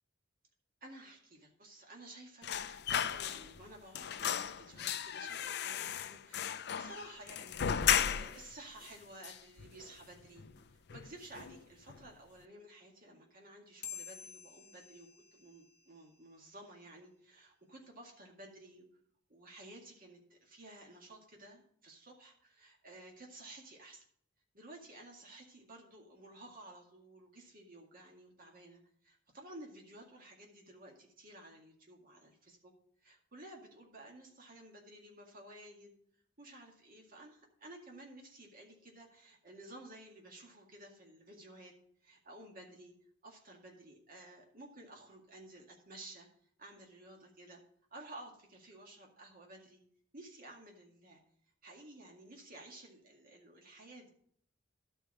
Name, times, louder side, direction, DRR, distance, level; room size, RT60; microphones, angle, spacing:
voice 1, 0.8-18.9 19.3-24.1 24.5-32.7 33.0-36.0 36.4-41.7 42.0-42.9 43.2-46.3 46.6-47.6 47.9-49.8 50.1-51.2 51.6-54.1, right 1 dB, 50° right, 0 dB, 2.1 m, -54 dB
sound 1, 2.4-3.7 3.9-8.5 8.8-8.9 9.2-10.1 10.4-10.6 10.9-11.6 11.9-12.1, left 9 dB, 60° left, 0.5 m, -35 dB
sound 2, 13.8-16.7, left 8 dB, 40° left, 1.1 m, -50 dB
12.0 x 4.7 x 6.5 m, 0.63 s
head